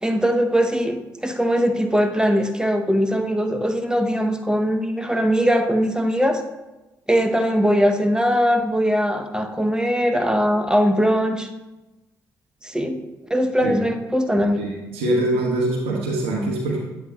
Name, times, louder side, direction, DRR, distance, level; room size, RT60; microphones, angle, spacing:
voice 1, 0.0-6.4 7.1-11.5 12.6-13.0 13.3-14.6, equal, 10° right, 6 dB, 0.9 m, -20 dB
voice 2, 14.6-16.8, right 1 dB, 70° right, -2 dB, 1.0 m, -23 dB
8.2 x 6.9 x 2.3 m, 1.1 s
hypercardioid pair, 40°, 10 cm